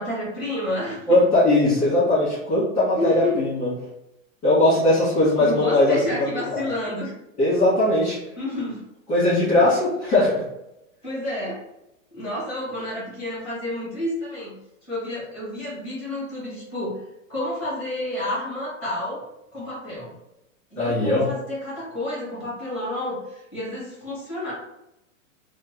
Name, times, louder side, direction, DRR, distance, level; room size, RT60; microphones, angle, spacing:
voice 1, 0.0-1.3 3.0-3.4 5.4-7.1 8.4-8.8 11.0-11.6 12.1-14.5 14.9-17.0 17.3-19.2 19.5-20.2 20.7-24.5, left 1 dB, 5° right, -7 dB, 1.3 m, -29 dB
voice 2, 1.1-3.7 4.4-6.6 7.4-8.2 9.1-10.4 20.8-21.3, left 1 dB, 15° left, -11 dB, 1.4 m, -20 dB
3.4 x 2.1 x 3.1 m, 0.86 s
supercardioid pair, 165°, 40 cm